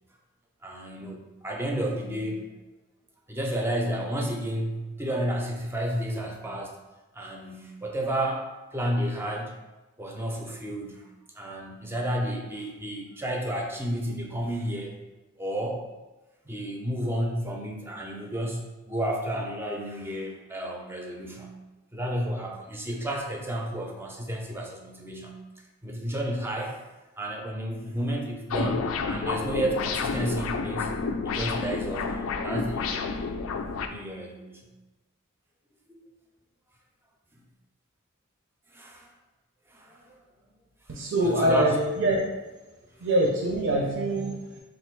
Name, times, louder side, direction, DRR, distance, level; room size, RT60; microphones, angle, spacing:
voice 1, 0.6-2.5 3.3-6.8 7.1-9.6 10.0-11.1 11.4-15.0 15.4-15.8 16.5-21.6 21.9-25.4 25.8-26.8 27.2-30.9 31.2-33.3 33.8-34.7 35.9-36.0 38.7-39.1 39.7-40.2 41.2-41.8, right 1 dB, 10° right, 0 dB, 0.5 m, -31 dB
sound 1, 28.5-33.9, left 4 dB, 70° left, 0.3 m, -30 dB
voice 2, 40.9-42.2 43.0-44.6, right 1 dB, 60° right, -2 dB, 0.6 m, -24 dB
3.4 x 2.6 x 4.5 m, 1.1 s
head